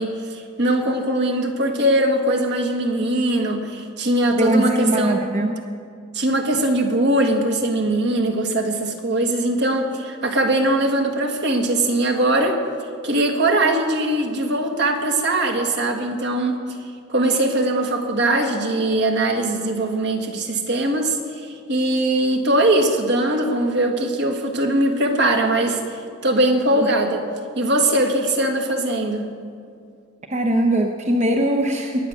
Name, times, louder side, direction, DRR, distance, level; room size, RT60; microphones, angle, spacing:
voice 1, 0.0-5.2 6.1-12.6 13.0-16.6 17.1-27.2 27.5-29.3, right 1 dB, 55° right, 4 dB, 1.6 m, -21 dB
voice 2, 4.4-5.6 30.3-32.1, right 1 dB, 35° right, 3 dB, 0.8 m, -20 dB
21.5 x 8.8 x 6.4 m, 2.3 s
head